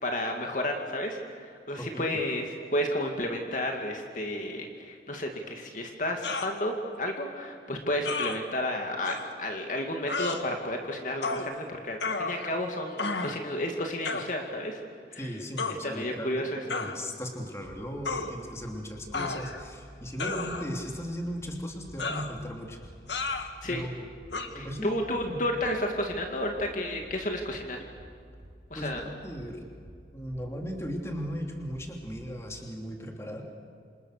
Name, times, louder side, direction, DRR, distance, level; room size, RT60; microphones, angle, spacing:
voice 1, 0.0-2.4 2.7-14.8 15.1-15.4 15.8-16.6 23.6-23.8 24.5-27.9 28.7-29.0, left 1 dB, 45° left, 2 dB, 2.3 m, -32 dB
voice 2, 1.8-2.2 15.2-22.9 23.2-24.1 24.5-24.9 25.2-25.4 28.7-29.7 30.1-33.4, equal, 15° left, 1 dB, 3.0 m, -37 dB
sound 1, 6.2-6.5 8.0-8.4 9.0-9.2 10.1-10.4 11.2-11.5 12.0-12.6 13.0-13.4 14.0-14.3 15.6-15.8 16.7-17.0 18.0-18.3 19.1-19.7 20.2-20.8 22.0-22.3 23.1-23.5 24.3-24.5, left 3 dB, 80° left, 2.0 m, -32 dB
sound 2, 17.6-32.4, equal, 85° right, 5.1 m, -50 dB
27.5 x 27.5 x 6.7 m, 2.2 s
head